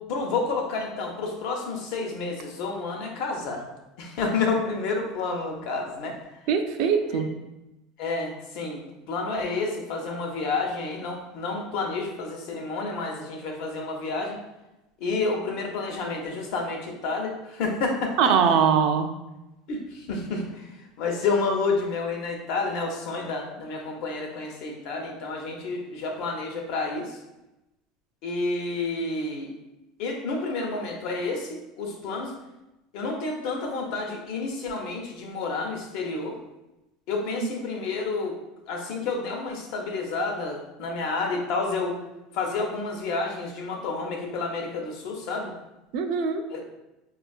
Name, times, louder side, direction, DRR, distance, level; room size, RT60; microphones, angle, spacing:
voice 1, 0.1-3.6 4.0-6.2 7.1-7.2 8.0-14.4 15.0-18.3 19.7-20.7 21.0-27.2 28.2-29.5 30.0-32.4 32.9-36.4 37.1-38.4 38.7-42.0 42.3-45.5 46.5-46.6, left 3 dB, 65° left, 2 dB, 0.7 m, -30 dB
voice 2, 6.5-7.3 18.2-19.1 45.9-46.4, right 7 dB, 65° right, 6 dB, 0.4 m, -22 dB
4.4 x 2.3 x 2.3 m, 0.96 s
supercardioid pair, 135°, 0 cm